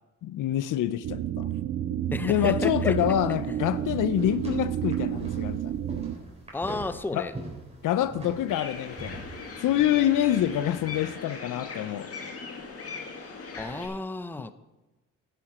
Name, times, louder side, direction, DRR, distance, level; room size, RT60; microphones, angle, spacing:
voice 1, 0.2-1.5 2.2-5.7 7.1-7.3 7.8-9.2 9.6-12.1, left 11 dB, 75° left, 0.7 m, -26 dB
sound 1, 1.0-6.2, right 11 dB, 60° right, 0.7 m, -30 dB
voice 2, 2.1-2.9 6.5-7.3 13.6-14.5, left 2 dB, 5° left, 0.6 m, -32 dB
sound 2, 2.2-11.1, right 2 dB, 20° right, 3.9 m, -44 dB
sound 3, 8.5-13.9, left 4 dB, 45° left, 2.0 m, -39 dB
11.5 x 11.0 x 4.3 m
cardioid pair, 80°, 32 cm